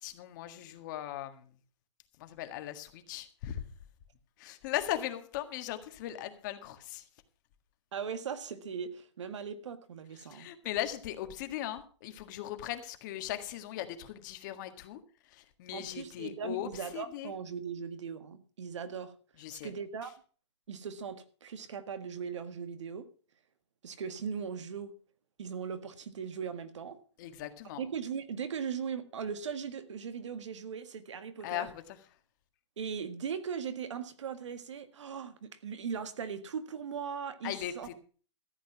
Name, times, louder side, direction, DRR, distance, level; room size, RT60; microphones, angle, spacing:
voice 1, 0.0-1.4 2.2-3.6 4.4-7.0 10.3-15.0 15.3-16.7 16.9-17.3 19.4-19.7 27.2-27.8 31.4-31.7 37.4-37.7, left 13 dB, 40° left, 1.7 m, -38 dB
voice 2, 7.9-10.5 15.7-19.1 19.5-20.1 20.7-23.1 23.8-24.9 25.4-27.0 27.7-31.7 32.8-37.9, right 6 dB, 80° right, 1.7 m, -39 dB
14.0 x 8.2 x 6.0 m
hypercardioid pair, 155°, 15 cm